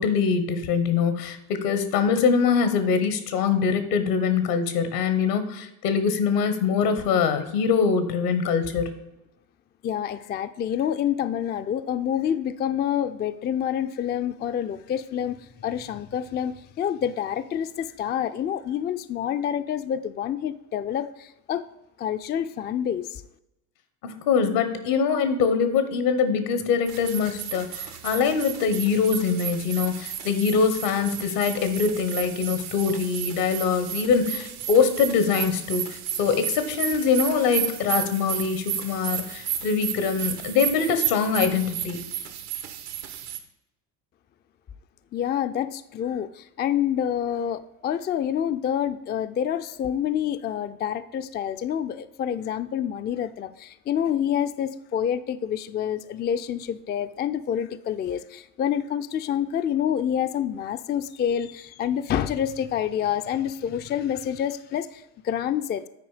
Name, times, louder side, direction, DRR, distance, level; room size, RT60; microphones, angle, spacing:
voice 1, 0.0-9.0 24.0-42.0, left 6 dB, 80° left, 10 dB, 1.4 m, -23 dB
voice 2, 9.8-15.4 15.6-21.6 22.0-23.2 45.1-65.8, left 9 dB, 25° left, 10 dB, 0.4 m, -27 dB
sound 1, 26.9-43.4, right 10 dB, 85° right, 1.2 m, -33 dB
9.2 x 4.6 x 4.9 m, 0.90 s
hypercardioid pair, 70°, 46 cm